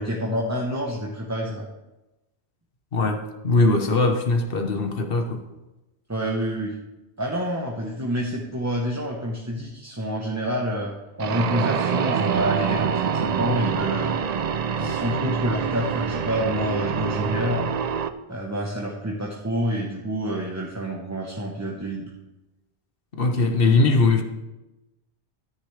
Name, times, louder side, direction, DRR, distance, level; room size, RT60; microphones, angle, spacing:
voice 1, 0.0-1.7 6.1-6.8 7.2-14.1 14.8-17.7 18.3-22.1, equal, 15° right, -1 dB, 0.9 m, -28 dB
voice 2, 2.9-5.4 23.2-24.2, left 3 dB, 55° left, 6 dB, 1.2 m, -20 dB
sound 1, 11.2-18.1, right 6 dB, 55° right, 0.4 m, -25 dB
13.5 x 9.6 x 3.3 m, 1.0 s
omnidirectional pair, 1.1 m